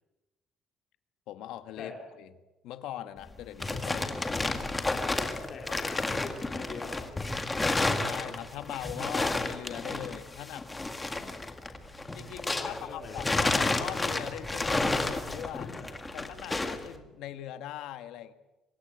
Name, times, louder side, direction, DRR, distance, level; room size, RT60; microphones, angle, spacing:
voice 1, 1.3-2.3 2.6-4.2 7.9-10.6 12.1-15.7 16.1-18.3, left 12 dB, 85° left, 10 dB, 1.7 m, -41 dB
sound 1, 3.2-12.8 13.1-16.9, left 2 dB, 10° left, 1.8 m, -31 dB
voice 2, 4.2-4.6 5.1-7.4 10.3-10.5 11.1-11.5 12.6-13.4 15.5-15.9, left 4 dB, 40° left, 0 dB, 4.1 m, -44 dB
sound 2, 11.7-17.1, right 9 dB, 70° right, 7.2 m, -56 dB
25.0 x 22.0 x 8.0 m, 1.1 s
cardioid pair, 165°, 0 cm